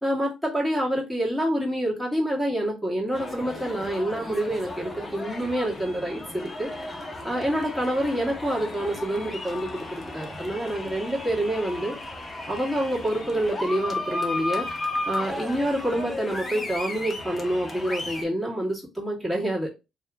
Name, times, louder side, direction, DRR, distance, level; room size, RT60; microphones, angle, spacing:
voice 1, 0.0-6.7 7.2-9.9 10.1-12.0 12.5-14.8 15.1-19.7, right 1 dB, 5° right, 1.9 m, -27 dB
sound 1, 3.1-18.2, left 2 dB, 20° left, 1.0 m, -34 dB
3.1 x 2.8 x 3.7 m
cardioid pair, 90°, 0 cm